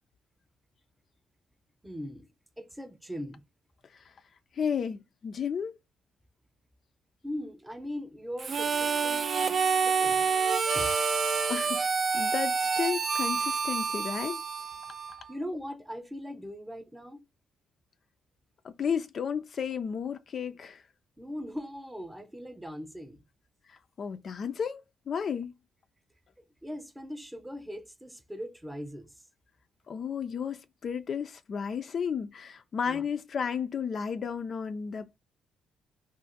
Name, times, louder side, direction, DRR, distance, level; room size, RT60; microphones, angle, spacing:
voice 1, 1.8-2.3 2.6-3.4 7.2-10.3 10.7-11.0 15.3-17.2 21.2-23.2 26.6-29.2 32.9-33.0, equal, 10° right, 0.7 m, -40 dB
voice 2, 4.5-5.8 10.7-10.9 11.5-11.9 12.1-14.4 18.6-20.8 23.7-25.5 29.9-35.2, left 7 dB, 50° left, 0.3 m, -33 dB
Harmonica, 8.4-15.3, right 5 dB, 45° right, 0.4 m, -28 dB
2.4 x 2.4 x 3.8 m
cardioid pair, 90°, 0 cm